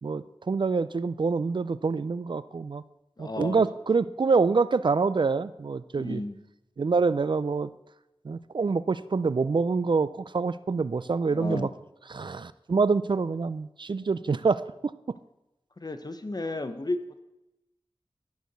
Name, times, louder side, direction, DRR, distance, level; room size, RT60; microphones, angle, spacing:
voice 1, 0.0-2.8 3.2-6.2 6.8-7.7 8.2-11.7 12.1-14.6, right 4 dB, 50° right, 16 dB, 0.3 m, -26 dB
voice 2, 3.2-3.7 5.9-6.4 11.3-11.7 15.8-17.2, left 2 dB, 40° left, 9 dB, 0.8 m, -33 dB
11.5 x 4.7 x 6.6 m, 0.94 s
wide cardioid pair, 60°, 10 cm